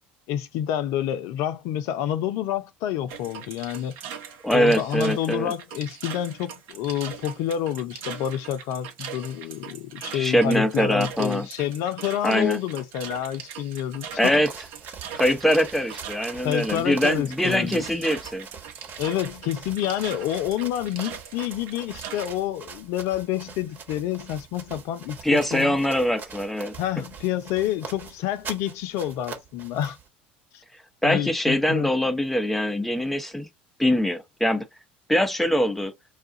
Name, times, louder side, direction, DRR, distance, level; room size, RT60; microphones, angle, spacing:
voice 1, 0.3-3.9 4.5-14.4 16.4-17.8 19.0-25.8 26.8-30.0 31.0-31.9, left 11 dB, 65° left, 0.6 m, -28 dB
sound 1, 3.1-22.3, right 8 dB, 65° right, 1.0 m, -40 dB
voice 2, 4.4-5.5 10.1-11.5 12.2-12.6 14.2-14.5 15.1-18.5 25.2-26.7 31.0-33.5 33.8-34.7 35.1-35.9, equal, 5° left, 0.8 m, -23 dB
sound 2, 14.1-30.1, right 5 dB, 40° right, 1.2 m, -42 dB
2.4 x 2.4 x 3.8 m
hypercardioid pair, 75°, 5 cm